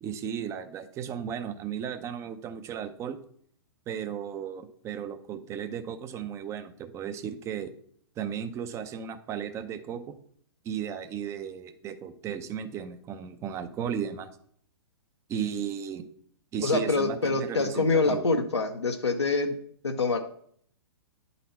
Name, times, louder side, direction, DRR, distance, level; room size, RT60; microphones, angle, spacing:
voice 1, 0.0-3.2 3.9-7.7 8.2-10.2 10.6-14.3 15.3-16.0 16.5-18.2, right 8 dB, 20° right, 10 dB, 0.6 m, -35 dB
voice 2, 16.6-19.6 19.8-20.2, left 3 dB, 90° left, 3 dB, 0.7 m, -25 dB
9.8 x 4.1 x 4.2 m, 0.62 s
figure-of-eight pair, 120°, 14 cm